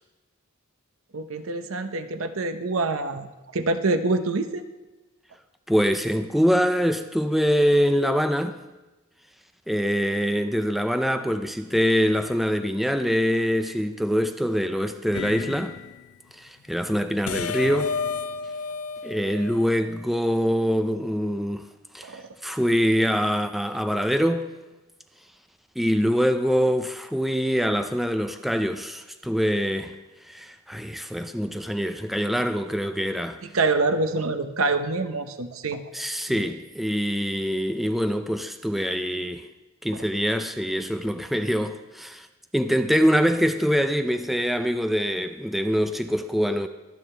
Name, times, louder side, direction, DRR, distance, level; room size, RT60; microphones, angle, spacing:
voice 1, 1.1-3.3 3.5-4.6 22.0-22.3 33.5-35.8 36.3-36.4, right 3 dB, 65° right, 0.8 m, -25 dB
voice 2, 5.7-8.6 9.7-15.8 16.4-18.0 19.0-21.6 21.9-24.5 25.8-29.9 30.3-33.4 35.9-39.5 39.8-42.3 42.5-46.7, equal, ahead, 0.4 m, -24 dB
sound 1, 15.1-16.1 17.3-20.1, left 5 dB, 75° left, 0.4 m, -32 dB
23.0 x 7.9 x 3.3 m
head